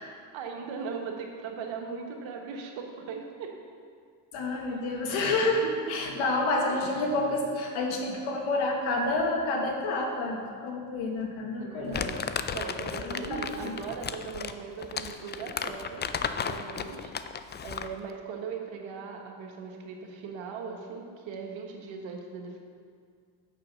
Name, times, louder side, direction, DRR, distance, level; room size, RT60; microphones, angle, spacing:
voice 1, 0.3-3.5 4.5-5.7 6.3-6.8 11.6-22.6, right 5 dB, 70° right, 2 dB, 1.5 m, -39 dB
voice 2, 4.3-12.1 13.1-13.7, left 2 dB, 75° left, 1 dB, 1.7 m, -29 dB
Crumpling crinkling, 11.9-18.0, left 6 dB, 25° left, 0.3 m, -34 dB
6.6 x 6.1 x 6.9 m, 2.1 s
supercardioid pair, 70°, 48 cm